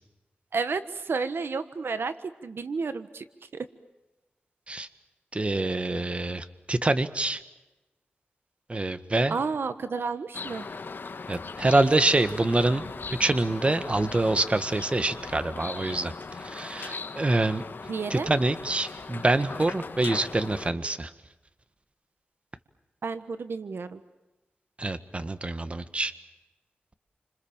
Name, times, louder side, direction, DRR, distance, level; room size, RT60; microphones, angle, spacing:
voice 1, 0.5-2.1 2.4-3.2 3.5-3.7 9.3-10.7 17.9-18.3 23.0-24.0, right 4 dB, 75° right, 11 dB, 1.3 m, -31 dB
voice 2, 5.3-7.4 8.7-9.4 11.3-12.8 13.1-17.6 18.1-21.1 24.8-26.1, right 2 dB, 30° right, 11 dB, 1.8 m, -26 dB
sound 1, 10.3-20.7, left 4 dB, 60° left, 1.9 m, -39 dB
29.5 x 27.0 x 7.4 m, 1.0 s
wide cardioid pair, 80°, 4 cm